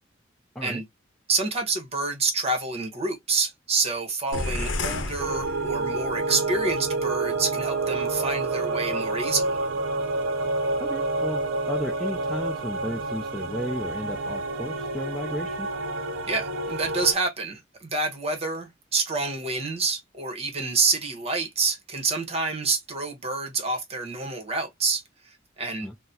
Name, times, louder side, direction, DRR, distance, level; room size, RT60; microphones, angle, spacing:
voice 1, 1.3-9.6 16.3-25.9, right 3 dB, 30° right, 1.0 m, -28 dB
sound 1, 4.3-6.2, left 2 dB, 70° left, 0.8 m, -31 dB
sound 2, 5.2-17.1, right 3 dB, 90° right, 0.6 m, -28 dB
voice 2, 10.8-15.7 25.8-26.0, equal, 5° left, 0.4 m, -34 dB
3.8 x 2.1 x 2.7 m
head